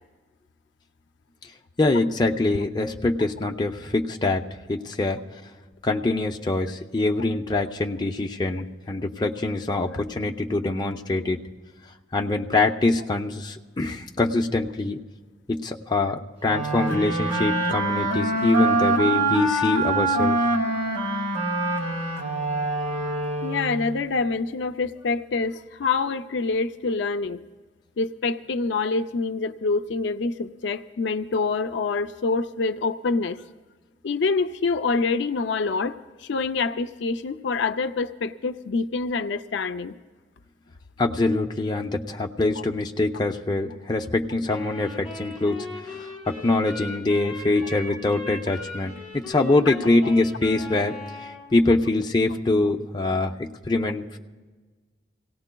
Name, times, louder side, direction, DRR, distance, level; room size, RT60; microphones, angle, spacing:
voice 1, 1.8-4.4 4.7-5.2 5.8-11.4 12.1-15.0 15.5-20.4 41.0-50.9 51.5-54.2, left 2 dB, 25° left, 2 dB, 0.5 m, -24 dB
sound 1, 16.4-23.9, right 2 dB, 75° right, 1.8 m, -24 dB
voice 2, 23.4-27.4 28.0-33.4 34.0-39.9 49.7-49.8, left 4 dB, 80° left, 10 dB, 0.4 m, -26 dB
Wind instrument woodwind instrument, 44.5-51.4, left 2 dB, ahead, 4.5 m, -39 dB
25.5 x 17.5 x 2.2 m, 1.4 s
head